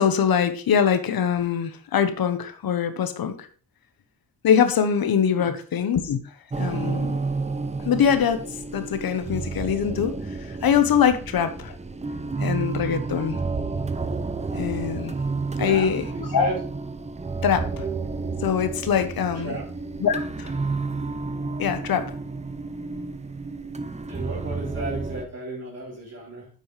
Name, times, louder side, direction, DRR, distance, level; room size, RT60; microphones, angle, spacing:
voice 1, 0.0-3.5 4.4-6.2 6.6-7.2 7.8-8.4 8.7-11.8 12.4-13.4 14.5-15.1 15.6-16.0 16.3-16.5 17.4-17.9 18.4-19.5 20.0-20.5 21.6-22.1, left 8 dB, 70° left, 9 dB, 1.1 m, -23 dB
sound 1, 6.5-25.3, right 3 dB, 20° right, 0.7 m, -31 dB
voice 2, 15.5-16.6 19.3-19.6 24.1-26.5, right 2 dB, 45° right, -5 dB, 4.0 m, -33 dB
8.9 x 7.4 x 3.3 m, 0.39 s
wide cardioid pair, 115°, 37 cm